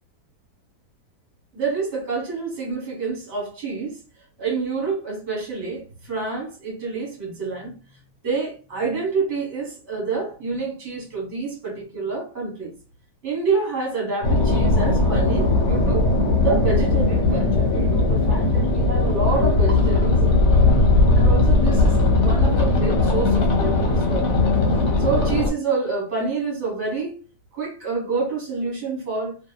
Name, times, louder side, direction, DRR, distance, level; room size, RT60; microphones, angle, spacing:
voice 1, 1.5-4.0 4.4-7.7 8.2-12.7 13.2-16.1 16.4-20.8 21.1-24.4 25.0-27.2 27.5-29.4, right 4 dB, 50° right, 1.5 m, -27 dB
sound 1, 14.2-25.5, left 2 dB, 55° left, 1.1 m, -18 dB
2.8 x 2.6 x 2.3 m
omnidirectional pair, 1.6 m